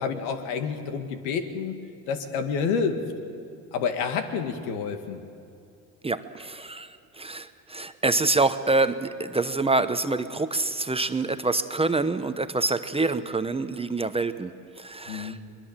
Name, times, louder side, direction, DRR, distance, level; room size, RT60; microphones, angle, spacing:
voice 1, 0.0-1.8 2.1-3.0 3.7-5.2 15.1-15.4, left 6 dB, 80° left, 7 dB, 2.2 m, -29 dB
voice 2, 6.0-14.5 14.8-15.4, right 3 dB, 15° right, 10 dB, 0.9 m, -26 dB
22.5 x 22.0 x 7.4 m, 2.6 s
hypercardioid pair, 85°, 44 cm